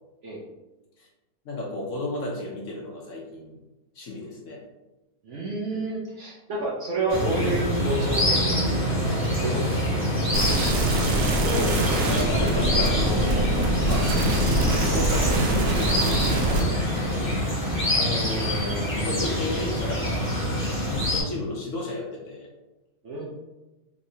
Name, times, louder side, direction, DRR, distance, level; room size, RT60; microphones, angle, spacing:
voice 1, 1.4-3.6 3.9-4.6 11.3-17.3 17.6-22.5, left 2 dB, 60° left, -2 dB, 0.9 m, -33 dB
voice 2, 5.2-10.6 23.0-23.3, right 2 dB, 60° right, -4 dB, 0.8 m, -30 dB
sound 1, 7.1-21.2, equal, 10° left, 1.0 m, -25 dB
sound 2, 10.3-16.6, right 2 dB, 80° right, 1.2 m, -25 dB
3.9 x 3.1 x 2.7 m, 1.1 s
omnidirectional pair, 1.7 m